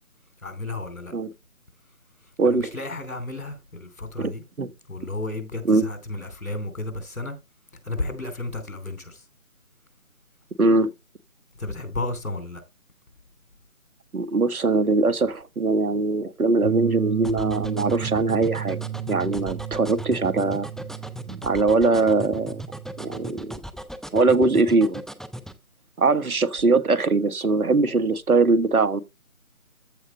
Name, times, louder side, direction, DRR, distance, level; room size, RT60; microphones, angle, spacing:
voice 1, 0.4-1.1 2.4-4.4 4.9-7.4 7.8-9.2 11.6-12.6, left 2 dB, 75° left, 3.2 m, -32 dB
voice 2, 2.4-2.8 4.2-4.3 4.6-4.7 5.6-5.9 10.6-10.9 14.1-18.8 19.1-20.7 21.3-22.6 23.0-23.6 24.1-25.0 26.0-29.0, right 3 dB, 85° right, 1.5 m, -21 dB
sound 1, 16.6-23.3, right 10 dB, 65° right, 1.1 m, -33 dB
sound 2, 17.2-25.6, equal, ahead, 0.4 m, -37 dB
14.5 x 5.2 x 3.2 m
figure-of-eight pair, 180°, 42 cm